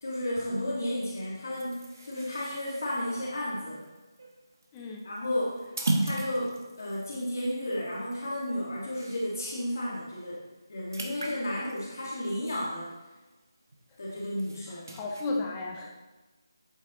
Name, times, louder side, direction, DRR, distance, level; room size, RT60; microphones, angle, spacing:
voice 1, 0.0-3.8 5.0-5.7 6.0-10.4 10.7-12.9 14.0-14.9, left 1 dB, 45° left, -5 dB, 1.7 m, -33 dB
sound 1, 1.5-9.5 9.9-10.1 10.4-13.3 13.7-15.3, right 2 dB, 45° right, 1.1 m, -38 dB
voice 2, 4.7-5.1 14.7-15.9, left 2 dB, 10° left, -1 dB, 0.5 m, -34 dB
8.6 x 8.2 x 2.9 m, 1.2 s
figure-of-eight pair, 180°, 2 cm